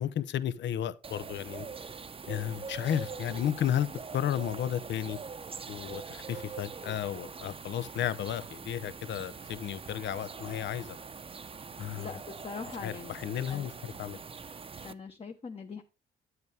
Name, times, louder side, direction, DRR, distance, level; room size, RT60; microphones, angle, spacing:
voice 1, 0.0-1.7 2.3-5.2 5.7-11.0 11.8-12.2 12.8-14.2, left 10 dB, 65° left, 0.7 m, -33 dB
sound 1, 1.0-14.9, right 5 dB, 30° right, 0.7 m, -43 dB
voice 2, 12.0-13.1 13.5-13.7 14.8-15.8, left 5 dB, 30° left, 1.1 m, -42 dB
9.5 x 8.1 x 3.4 m
cardioid pair, 90°, 20 cm